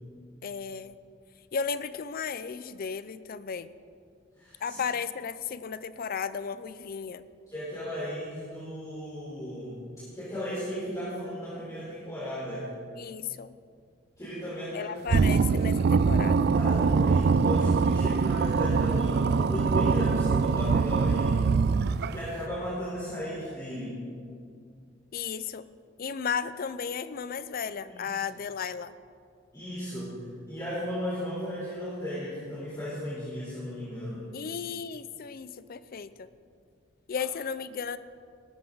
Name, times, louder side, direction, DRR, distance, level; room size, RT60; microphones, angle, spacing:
voice 1, 0.4-1.0 1.5-3.7 4.6-7.2 13.0-13.5 14.7-16.5 25.1-25.6 26.0-28.9 34.3-36.3 37.1-38.0, left 6 dB, 45° left, 15 dB, 0.4 m, -34 dB
voice 2, 4.3-4.8 7.5-9.8 10.1-12.6 14.2-14.9 16.5-21.5 22.1-24.0 27.8-28.2 29.5-34.2, equal, 15° left, -10 dB, 4.1 m, -35 dB
sound 1, 15.1-22.3, right 5 dB, 55° right, 0.4 m, -23 dB
18.5 x 13.5 x 3.9 m, 2.3 s
head